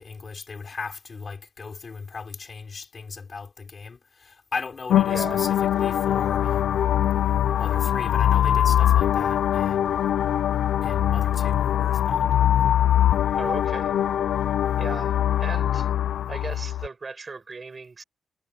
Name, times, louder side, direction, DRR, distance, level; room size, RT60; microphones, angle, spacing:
voice 1, 0.0-6.8 7.6-10.0 10.8-12.3, left 4 dB, 35° left, 5.6 m, -37 dB
sound 1, 4.9-16.9, left 11 dB, 85° left, 0.6 m, -22 dB
voice 2, 5.1-5.5 13.3-13.9 14.8-15.1 15.4-15.9 16.3-18.0, right 4 dB, 30° right, 5.1 m, -36 dB
wide cardioid pair, 140°, 0 cm